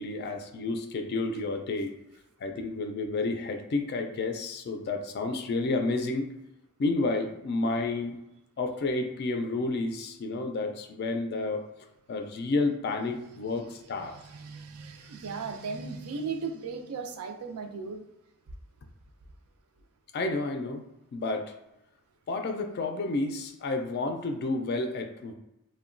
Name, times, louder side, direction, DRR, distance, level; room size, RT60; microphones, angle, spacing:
voice 1, 0.0-2.0 2.4-6.3 6.8-8.2 8.6-11.7 12.1-14.1 20.1-20.8 21.1-21.5 22.3-25.3, left 3 dB, 50° left, 5 dB, 0.3 m, -30 dB
voice 2, 14.0-18.0, right 5 dB, 85° right, 4 dB, 0.4 m, -37 dB
2.8 x 2.1 x 2.5 m, 0.90 s
head